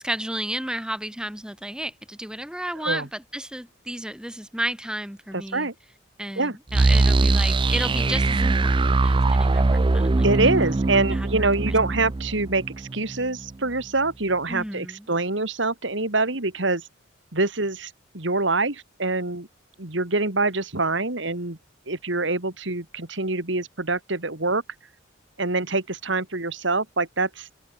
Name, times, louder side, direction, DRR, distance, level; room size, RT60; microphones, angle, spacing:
voice 1, 0.0-5.7 6.2-10.3 11.0-11.3 11.7-11.8 14.5-15.1, right 1 dB, 5° right, 1.7 m, -32 dB
voice 2, 5.3-5.7 6.4-6.6 10.2-16.9 17.3-19.5 19.8-21.6 21.9-24.6 25.4-27.5, right 3 dB, 65° right, 2.9 m, -25 dB
sound 1, 6.7-13.5, right 3 dB, 25° right, 0.4 m, -21 dB
open air
head